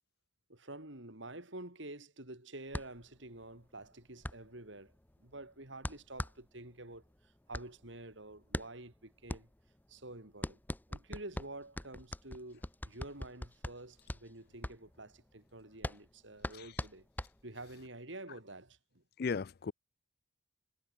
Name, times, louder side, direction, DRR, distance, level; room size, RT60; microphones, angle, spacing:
voice 1, 0.5-4.9 5.2-9.5 9.9-10.6 10.9-17.1 17.4-19.0, right 2 dB, 65° right, 4.6 m, -49 dB
sound 1, 2.7-17.8, left 1 dB, 10° left, 0.6 m, -43 dB
voice 2, 19.2-19.7, left 5 dB, 50° left, 0.4 m, -36 dB
head